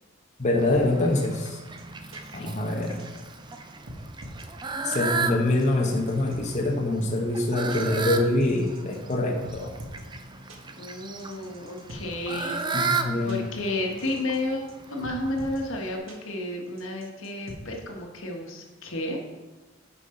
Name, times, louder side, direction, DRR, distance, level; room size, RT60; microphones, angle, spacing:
voice 1, 0.4-1.6 2.3-3.0 4.8-9.8 12.7-13.5, left 2 dB, 35° left, 0 dB, 0.9 m, -25 dB
Fowl, 0.6-16.0, right 4 dB, 25° right, 0.5 m, -35 dB
sound 1, 0.7-0.8 1.4-1.5 1.8-1.9 2.1-2.2 2.8-3.2 3.5-3.6 3.9-4.4 4.9-5.0 5.6-6.4 7.0-7.1 7.4-7.5 7.7-7.8 8.4-9.1 9.4-10.0 10.5-10.6 11.2-12.0 12.6-12.7 12.9-13.0 13.3-13.4 14.0-14.4 14.7-14.8 15.0-15.6 16.1-16.2 16.8-17.6, equal, 85° right, 1.4 m, -44 dB
voice 2, 10.7-19.2, left 1 dB, 80° left, 1 dB, 1.4 m, -32 dB
9.7 x 5.4 x 3.8 m, 1.2 s
head